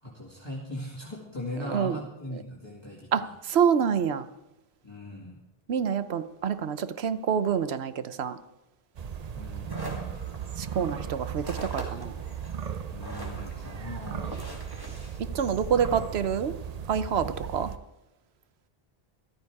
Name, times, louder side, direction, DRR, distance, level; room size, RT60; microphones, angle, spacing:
voice 1, 0.0-3.1 4.8-5.4 9.3-10.2 12.9-14.4, left 1 dB, 25° left, -5 dB, 2.2 m, -39 dB
voice 2, 1.6-2.0 2.3-2.4 3.1-4.3 5.7-8.4 10.6-12.1 15.3-16.5 16.9-17.7, right 7 dB, 90° right, 12 dB, 1.0 m, -27 dB
sound 1, 9.0-17.8, right 8 dB, 45° right, 0.7 m, -37 dB
sound 2, 9.3-16.0, right 1 dB, 20° right, 2.6 m, -44 dB
14.0 x 13.5 x 4.8 m, 0.97 s
omnidirectional pair, 1.0 m